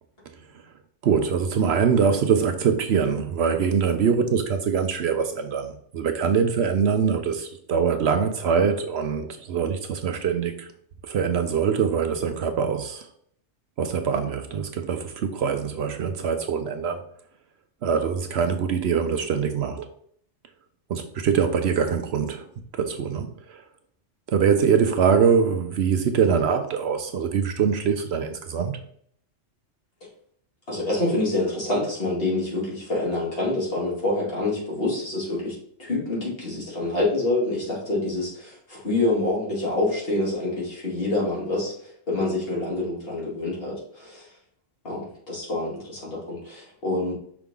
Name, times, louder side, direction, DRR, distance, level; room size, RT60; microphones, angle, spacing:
voice 1, 1.0-10.7 11.0-13.1 13.8-17.0 17.8-19.9 20.9-22.5 22.7-23.6 24.3-28.8, right 6 dB, 65° right, 0.8 m, -23 dB
voice 2, 30.7-44.3 44.8-47.1, left 2 dB, 50° left, 2.6 m, -27 dB
5.9 x 4.7 x 3.7 m
omnidirectional pair, 1.3 m